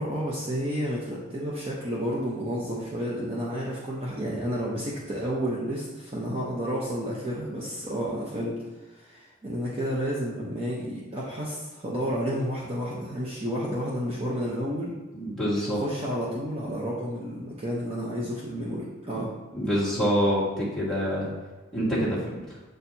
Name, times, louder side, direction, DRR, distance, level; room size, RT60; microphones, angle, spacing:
voice 1, 0.0-8.6 8.9-14.9 15.5-19.3, equal, 30° right, -6 dB, 0.8 m, -31 dB
voice 2, 15.1-15.8 19.5-21.3 21.7-22.2, equal, 5° left, -8 dB, 1.7 m, -26 dB
7.7 x 4.4 x 2.7 m, 1.2 s
head